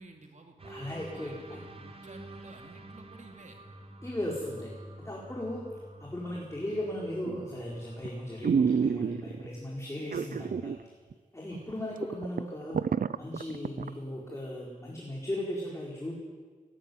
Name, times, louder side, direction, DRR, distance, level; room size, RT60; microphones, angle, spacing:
voice 1, 0.0-3.6 11.5-11.7, right 2 dB, 60° right, 3 dB, 2.7 m, -52 dB
sound 1, 0.6-8.6, right 1 dB, 40° right, 2.2 m, -49 dB
voice 2, 0.7-1.6 4.0-5.7 6.0-10.9 11.3-12.8 13.1-16.1, left 1 dB, 20° left, -3 dB, 4.5 m, -37 dB
sound 2, 7.3-7.6 8.0-8.1 8.4-9.5 10.1-10.8 11.1-11.2 11.7-11.8 12.0-13.9 14.3-14.4, right 6 dB, 80° right, 0.6 m, -28 dB
18.5 x 18.0 x 9.4 m, 1.5 s
wide cardioid pair, 110°, 14 cm